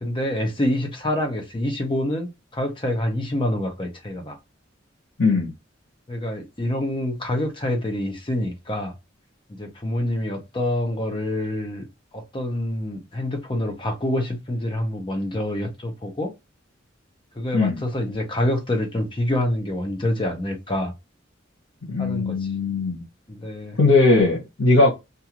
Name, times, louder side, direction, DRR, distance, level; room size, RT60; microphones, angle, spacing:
voice 1, 0.0-4.4 6.1-8.9 9.6-11.9 12.1-16.3 17.4-20.9 22.0-22.5 23.3-23.8, left 1 dB, 25° left, 0.8 m, -26 dB
voice 2, 5.2-5.5 17.5-17.8 21.9-23.0 23.8-24.9, left 3 dB, 80° left, 1.1 m, -19 dB
2.6 x 2.4 x 2.9 m
head